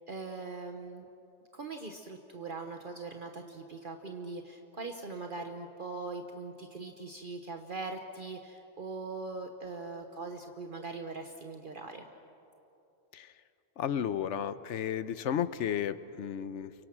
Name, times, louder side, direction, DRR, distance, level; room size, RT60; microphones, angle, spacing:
voice 1, 0.1-1.1 1.5-12.1, right 3 dB, 50° right, 5 dB, 1.2 m, -41 dB
voice 2, 13.8-16.7, left 9 dB, 90° left, 14 dB, 1.1 m, -33 dB
29.5 x 23.5 x 6.1 m, 2.9 s
omnidirectional pair, 1.2 m